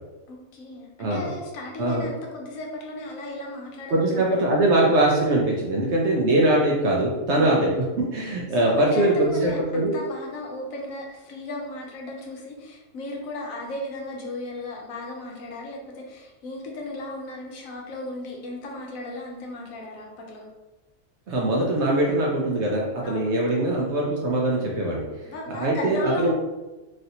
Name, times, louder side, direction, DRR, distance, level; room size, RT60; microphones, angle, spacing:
voice 1, 0.3-4.6 8.6-20.5 23.0-23.6 25.2-26.3, left 2 dB, 70° left, 0 dB, 1.0 m, -35 dB
voice 2, 3.9-9.9 21.3-25.0 25.5-26.3, right 1 dB, 65° right, -3 dB, 0.7 m, -22 dB
3.2 x 2.6 x 2.7 m, 1.1 s
omnidirectional pair, 1.5 m